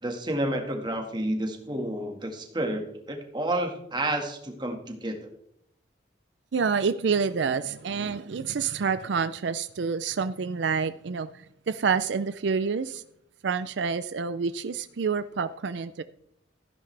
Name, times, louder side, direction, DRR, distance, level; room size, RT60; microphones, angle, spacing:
voice 1, 0.0-5.3, right 1 dB, 25° right, 4 dB, 1.7 m, -30 dB
voice 2, 6.5-13.0 13.4-16.0, right 5 dB, 75° right, 12 dB, 0.5 m, -28 dB
15.0 x 10.5 x 3.3 m, 0.74 s
head